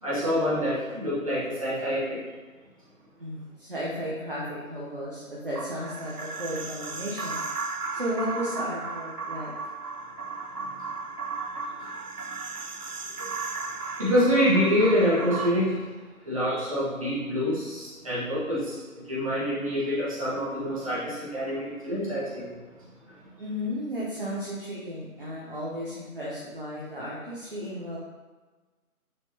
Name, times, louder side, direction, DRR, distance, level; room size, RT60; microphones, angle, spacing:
voice 1, 0.0-2.2 13.2-13.3 14.0-15.8 16.2-22.5, equal, 25° right, -10 dB, 1.5 m, -26 dB
voice 2, 3.2-7.4 7.9-9.5 23.4-28.0, equal, 40° right, -6 dB, 0.9 m, -34 dB
sound 1, 5.5-15.5, right 4 dB, 90° right, 0.7 m, -35 dB
9.4 x 3.8 x 2.8 m, 1.3 s
figure-of-eight pair, 160°, 44 cm